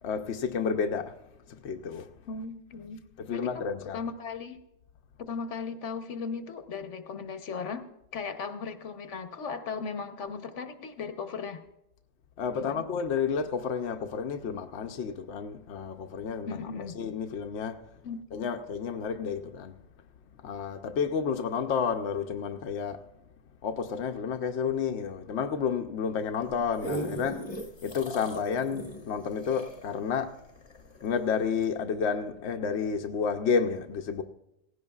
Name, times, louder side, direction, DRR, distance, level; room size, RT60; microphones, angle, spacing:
voice 1, 0.0-1.1 1.5-2.1 3.2-4.0 12.4-16.6 16.9-17.8 18.3-19.7 20.4-23.0 23.6-27.5 27.8-30.3 31.0-34.2, left 6 dB, 70° left, 1.0 m, -31 dB
voice 2, 2.3-3.0 3.3-4.6 5.2-7.9 8.1-11.6 12.5-12.8 16.5-17.0 18.0-18.2, left 5 dB, 90° left, 1.3 m, -37 dB
sound 1, 26.4-31.1 31.6-31.7, equal, 25° left, 1.2 m, -38 dB
18.0 x 16.0 x 2.4 m
omnidirectional pair, 1.2 m